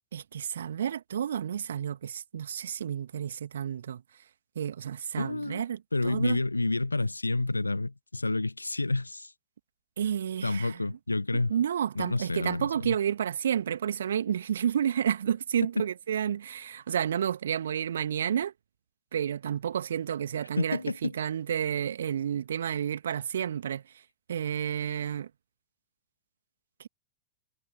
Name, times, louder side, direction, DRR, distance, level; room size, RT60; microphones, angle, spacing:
voice 1, 0.1-4.0 4.6-6.4 10.0-11.0 11.5-18.5 19.1-23.8 24.3-25.3, right 9 dB, 65° right, 2.3 m, -30 dB
voice 2, 5.2-5.6 5.9-9.3 10.4-11.5 12.0-12.9 15.8-15.9 20.6-21.1, left 2 dB, 80° left, 0.7 m, -29 dB
figure-of-eight pair, 90°, 0 cm